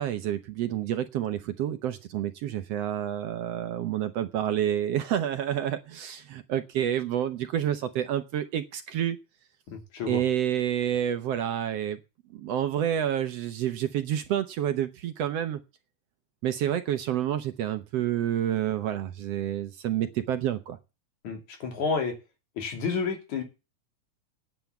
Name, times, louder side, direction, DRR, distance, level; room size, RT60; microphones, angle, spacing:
voice 1, 0.0-9.2 10.1-12.0 12.3-15.6 16.4-20.8, right 10 dB, 65° right, 9 dB, 1.8 m, -29 dB
voice 2, 9.7-10.2 21.2-22.1 22.6-23.4, left 5 dB, 75° left, 4 dB, 4.2 m, -30 dB
9.4 x 9.2 x 7.1 m, 0.27 s
omnidirectional pair, 3.5 m